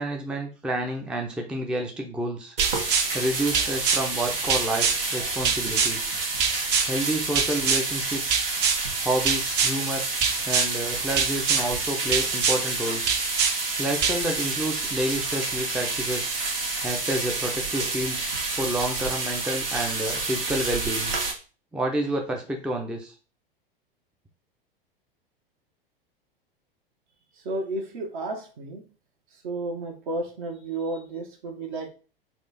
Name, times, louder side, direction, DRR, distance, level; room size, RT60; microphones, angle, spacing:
voice 1, 0.0-2.6 3.1-6.1 6.9-8.5 9.0-10.1 10.5-13.2 13.8-16.4 16.8-18.2 18.6-21.1 21.7-23.2, right 1 dB, 5° right, 2 dB, 0.5 m, -29 dB
sound 1, 2.6-3.1 3.5-4.0 4.5-5.0 5.4-5.9 6.4-6.9 7.4-7.8 8.3-8.8 9.3-9.7 10.2-10.7 11.2-11.6 12.1-12.6 13.1-13.5 14.0-14.2, right 6 dB, 35° right, 0.7 m, -23 dB
sound 2, 2.6-21.3, right 3 dB, 75° right, 1.2 m, -29 dB
voice 2, 27.3-28.8 29.3-31.9, right 2 dB, 55° right, 2 dB, 1.2 m, -32 dB
4.2 x 2.4 x 4.1 m, 0.36 s
figure-of-eight pair, 90°, 29 cm